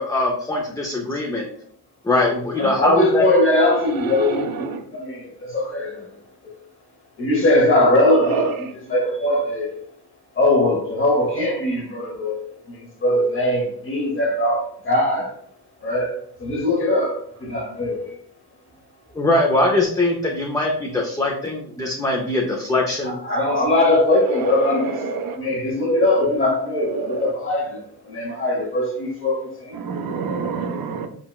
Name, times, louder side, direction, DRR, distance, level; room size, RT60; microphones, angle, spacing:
voice 1, 0.0-1.4 2.0-3.3 19.1-23.2, left 2 dB, 10° left, 0.4 m, -21 dB
voice 2, 2.6-6.1 7.2-9.7 10.4-12.4 12.7-15.3 15.8-18.1 23.0-25.0 25.3-27.8 28.1-29.8, left 1 dB, 30° left, 1.0 m, -21 dB
voice 3, 4.0-4.8 8.2-8.5 24.3-25.4 26.8-27.3 29.7-31.1, right 5 dB, 60° right, 0.5 m, -27 dB
3.8 x 2.2 x 2.2 m
cardioid pair, 85°, 40 cm